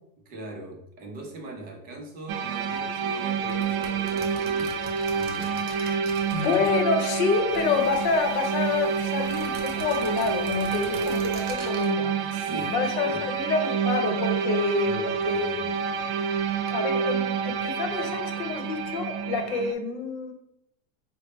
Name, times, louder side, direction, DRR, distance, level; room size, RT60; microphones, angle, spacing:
voice 1, 0.3-4.8 5.1-5.7 12.3-12.8 13.0-13.2 14.8-15.8, right 2 dB, 20° right, 1 dB, 0.5 m, -40 dB
sound 1, 2.3-19.7, right 6 dB, 70° right, 0.5 m, -28 dB
sound 2, 3.4-7.2 7.5-8.6 9.1-11.9, right 3 dB, 45° right, 0.8 m, -43 dB
voice 2, 5.7-6.0 6.3-15.6 16.7-20.3, left 5 dB, 70° left, 5 dB, 0.8 m, -28 dB
sound 3, 7.5-12.5, left 1 dB, ahead, 1.0 m, -48 dB
3.9 x 2.1 x 3.1 m, 0.79 s
supercardioid pair, 150°, 43 cm